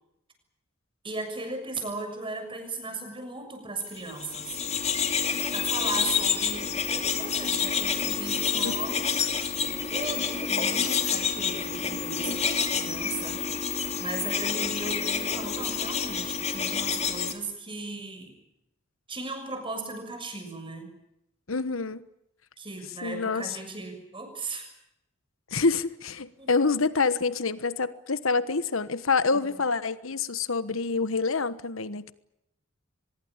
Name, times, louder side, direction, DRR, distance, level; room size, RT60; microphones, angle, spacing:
voice 1, 1.0-4.6 5.5-9.5 9.9-13.4 14.0-18.3 19.1-20.9 22.6-24.7 26.4-26.5 29.3-29.4, right 3 dB, 25° right, 6 dB, 6.7 m, -37 dB
sound 1, 4.1-17.3, left 6 dB, 30° left, 2.4 m, -28 dB
voice 2, 8.6-9.0 21.5-22.0 23.0-23.5 25.5-32.1, left 4 dB, 70° left, 14 dB, 1.3 m, -27 dB
24.5 x 21.5 x 8.8 m, 0.83 s
head